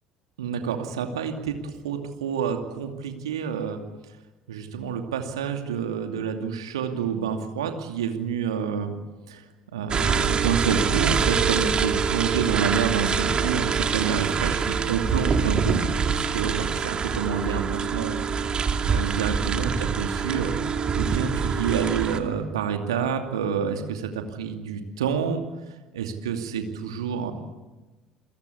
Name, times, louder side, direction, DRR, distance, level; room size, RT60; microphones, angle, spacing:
voice 1, 0.4-3.8 4.5-8.9 9.3-9.4 9.7-15.8 16.1-18.2 18.9-20.6 20.9-25.4 25.9-27.3, right 7 dB, 70° right, 5 dB, 2.5 m, -28 dB
sound 1, 9.9-22.2, right 6 dB, 30° right, 2.3 m, -25 dB
29.0 x 22.0 x 8.4 m, 1.2 s
figure-of-eight pair, 55°, 3 cm